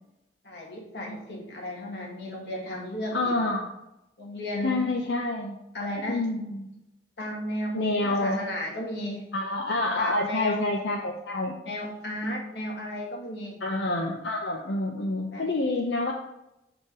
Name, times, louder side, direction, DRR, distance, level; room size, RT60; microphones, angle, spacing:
voice 1, 0.4-3.3 4.2-4.9 5.7-6.2 7.2-9.3 10.0-10.7 11.7-13.6 15.3-15.5, left 1 dB, 70° left, -2 dB, 2.1 m, -34 dB
voice 2, 3.1-3.7 4.6-5.6 6.1-6.7 7.7-8.4 9.3-11.5 13.6-16.1, left 2 dB, 90° left, 0 dB, 0.8 m, -27 dB
6.7 x 5.0 x 4.9 m, 0.90 s
head